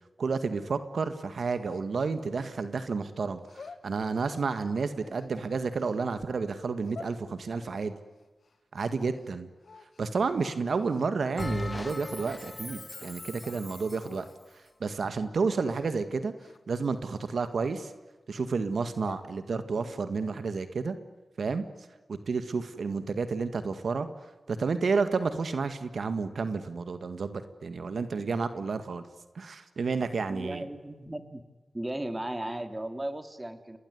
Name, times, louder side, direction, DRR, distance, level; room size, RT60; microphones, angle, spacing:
voice 1, 0.2-7.9 8.7-9.5 10.0-14.3 14.8-16.3 16.7-17.9 18.3-21.0 21.4-21.6 22.1-24.1 24.5-29.0 29.4-30.7, right 4 dB, 80° right, 10 dB, 1.8 m, -31 dB
sound 1, 1.6-2.9 3.4-4.5 5.0-6.0 6.6-7.2 7.6-9.3 9.6-10.2 10.7-11.1 11.8-11.9 12.2-12.7 13.1-13.2 13.4-13.6 14.0-14.4 14.7-15.0 15.5-15.9 16.4-16.7 17.1-18.3 18.8-19.3 19.7-20.2, left 4 dB, 75° left, 2.2 m, -50 dB
Bell, 11.4-14.2, left 2 dB, 30° left, 1.2 m, -38 dB
voice 2, 30.3-31.4 31.7-33.8, right 1 dB, 20° right, 9 dB, 3.0 m, -36 dB
29.0 x 20.5 x 9.6 m, 1.2 s
cardioid pair, 60°, 0 cm